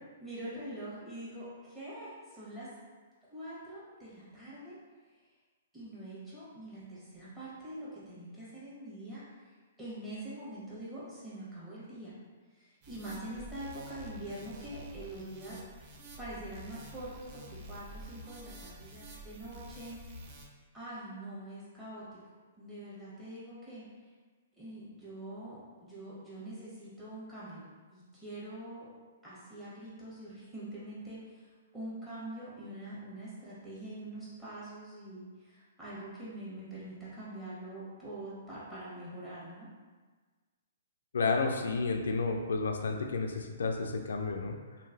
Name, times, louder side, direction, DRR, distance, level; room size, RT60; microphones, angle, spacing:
voice 1, 0.2-2.7 3.3-4.8 5.7-9.5 9.8-12.1 12.5-15.6 16.2-20.3 20.7-23.8 24.6-27.6 27.9-28.9 29.2-39.7, right 1 dB, 10° right, -11 dB, 1.3 m, -44 dB
sound 1, 12.8-20.5, equal, 40° right, 0.5 m, -49 dB
voice 2, 41.1-44.6, left 4 dB, 80° left, 4 dB, 0.3 m, -31 dB
3.0 x 2.5 x 2.6 m, 1.4 s
hypercardioid pair, 135°, 0 cm